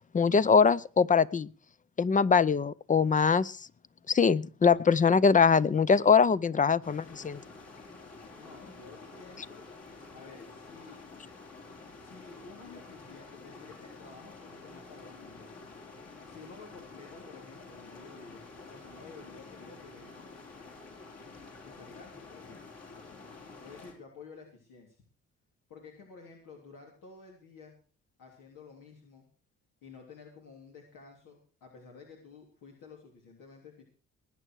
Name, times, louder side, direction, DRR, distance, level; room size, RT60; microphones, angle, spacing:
voice 1, 0.1-1.5 2.0-3.6 4.1-7.4, left 5 dB, 25° left, 19 dB, 0.6 m, -23 dB
sound 1, 6.8-23.9, left 3 dB, 50° left, 4.6 m, -49 dB
voice 2, 8.4-9.6 10.1-11.0 12.0-15.5 16.3-20.3 21.6-22.7 23.6-25.0 25.7-27.7 28.2-29.2 29.8-33.8, left 4 dB, 80° left, 0 dB, 3.2 m, -52 dB
20.5 x 9.0 x 4.7 m, 0.39 s
cardioid pair, 90°, 32 cm